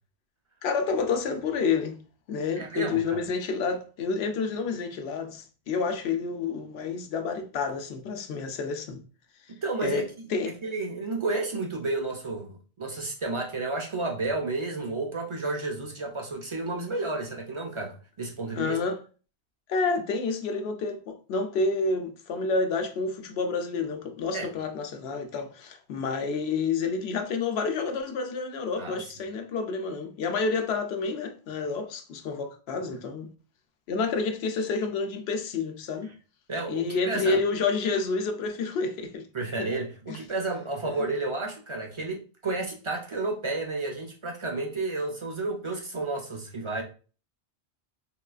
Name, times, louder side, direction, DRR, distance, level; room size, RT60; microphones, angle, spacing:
voice 1, 0.6-2.0 2.3-9.0 9.8-10.0 10.3-10.5 18.5-19.0 19.7-33.3 33.9-36.1 36.7-39.3 39.6-39.7 40.1-40.2 40.9-41.0, left 4 dB, 85° left, 0.8 m, -29 dB
voice 2, 2.6-3.2 9.6-10.1 10.4-18.8 24.3-24.5 28.8-29.0 36.5-37.4 39.3-46.8, right 3 dB, 45° right, 0.4 m, -31 dB
3.6 x 2.3 x 2.3 m
omnidirectional pair, 1.0 m